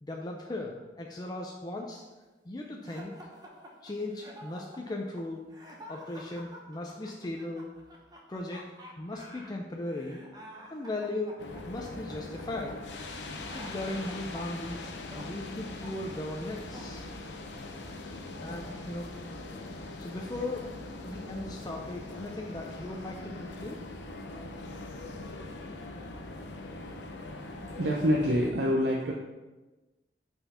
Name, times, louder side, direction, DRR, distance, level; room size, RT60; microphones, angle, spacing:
voice 1, 0.0-2.1 2.5-3.2 3.8-5.5 5.9-7.8 8.3-8.7 9.0-10.2 10.7-11.4 11.7-12.8 13.5-17.1 18.4-19.2 19.8-20.7 21.0-23.8, left 2 dB, 25° left, 0 dB, 0.5 m, -37 dB
sound 1, 2.8-18.0 18.4-19.1, equal, 20° right, 0.9 m, -50 dB
sound 2, 11.4-28.5, left 2 dB, 85° left, 0.7 m, -42 dB
voice 2, 27.8-29.1, equal, 80° right, -1 dB, 0.7 m, -26 dB
5.6 x 4.4 x 5.6 m, 1.2 s
head